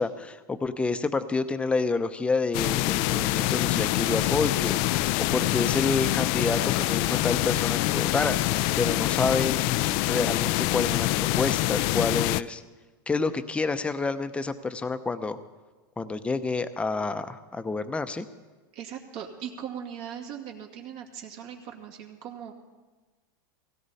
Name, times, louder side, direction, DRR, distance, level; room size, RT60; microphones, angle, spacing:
voice 1, 0.0-11.1 11.3-12.6 13.1-15.4 16.0-18.3, left 3 dB, 10° left, 10 dB, 0.7 m, -29 dB
sound 1, 2.5-12.4, left 17 dB, 50° left, 0.4 m, -25 dB
voice 2, 18.7-22.5, right 8 dB, 60° right, 1 dB, 2.2 m, -39 dB
17.0 x 16.5 x 4.2 m, 1.3 s
supercardioid pair, 130°, 11 cm